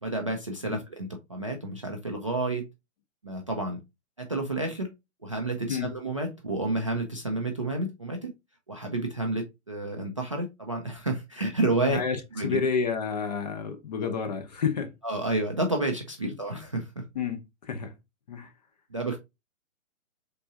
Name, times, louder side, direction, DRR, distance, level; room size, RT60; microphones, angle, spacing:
voice 1, 0.0-2.7 3.2-3.8 4.2-4.9 5.2-8.3 8.7-12.0 12.3-12.6 15.0-17.0 18.9-19.2, right 2 dB, 25° right, 0.3 m, -30 dB
voice 2, 11.9-14.9 17.1-17.9 18.3-18.5, left 6 dB, 35° left, 0.6 m, -30 dB
4.1 x 3.7 x 2.6 m
hypercardioid pair, 155°, 39 cm